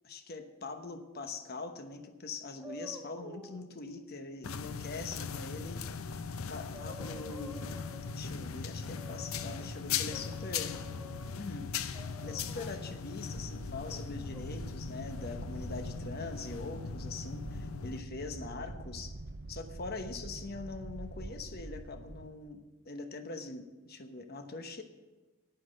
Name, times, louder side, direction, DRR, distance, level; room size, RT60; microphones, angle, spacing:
voice 1, 0.0-5.9 6.5-7.8 8.1-10.8 11.3-11.7 12.2-19.2 19.5-24.8, left 3 dB, 45° left, 7 dB, 1.0 m, -43 dB
sound 1, 2.6-3.7 6.2-6.3 6.6-8.3 8.8-9.7 10.1-11.4 11.9-13.0 13.9-14.4, left 1 dB, 5° right, 1.2 m, -49 dB
sound 2, 4.4-18.0, left 6 dB, 85° left, 0.6 m, -39 dB
sound 3, 13.3-22.3, right 2 dB, 50° right, 0.6 m, -45 dB
10.0 x 9.3 x 6.5 m, 1.2 s
head